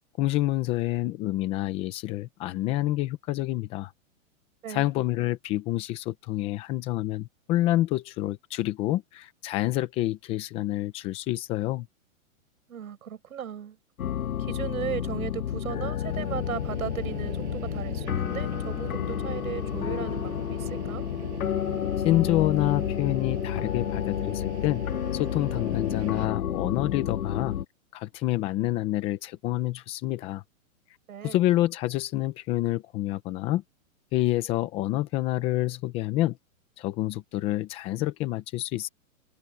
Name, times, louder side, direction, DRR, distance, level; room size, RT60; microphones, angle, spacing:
voice 1, 0.2-3.9 4.7-11.9 22.0-24.8 25.1-27.6 27.9-30.4 31.2-33.6 34.1-36.4 36.8-38.9, left 15 dB, 15° left, 0.6 m, -28 dB
voice 2, 12.7-13.8 14.4-21.1 31.1-31.4, right 9 dB, 85° right, 6.9 m, -36 dB
sound 1, 14.0-27.6, left 10 dB, 85° left, 2.5 m, -30 dB
sound 2, 16.1-26.3, right 13 dB, 55° right, 7.2 m, -43 dB
hypercardioid pair, 160°, 41 cm